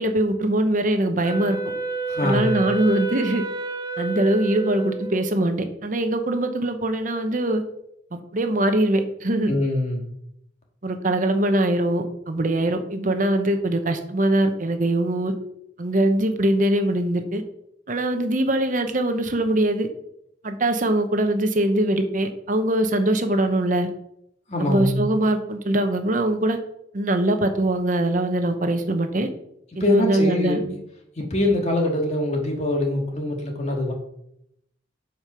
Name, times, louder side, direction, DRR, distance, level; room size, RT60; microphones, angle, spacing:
voice 1, 0.0-1.6 2.2-3.4 4.0-7.6 8.1-9.5 10.8-15.3 15.8-17.4 17.9-19.9 20.4-23.9 24.6-26.6 26.9-29.3 29.7-30.6, right 1 dB, 45° right, 7 dB, 0.9 m, -22 dB
Wind instrument woodwind instrument, 1.2-5.6, right 4 dB, 20° right, 0.5 m, -30 dB
voice 2, 2.1-2.6 9.5-10.1 24.5-25.1 29.8-30.8 31.2-33.9, left 1 dB, 35° left, 1 dB, 1.9 m, -23 dB
7.9 x 5.2 x 5.7 m, 0.77 s
head